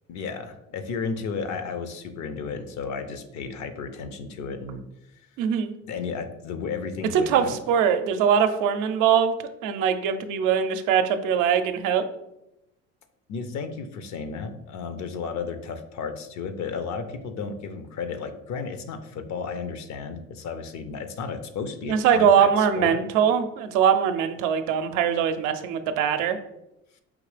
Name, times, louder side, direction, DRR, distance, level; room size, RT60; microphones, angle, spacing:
voice 1, 0.1-4.8 5.9-7.6 13.3-23.0, left 5 dB, 60° left, 9 dB, 0.7 m, -33 dB
voice 2, 5.4-5.7 7.1-9.3 9.6-12.0 21.9-26.4, right 8 dB, 80° right, 8 dB, 0.5 m, -22 dB
5.1 x 2.9 x 3.2 m, 0.90 s
supercardioid pair, 80°, 31 cm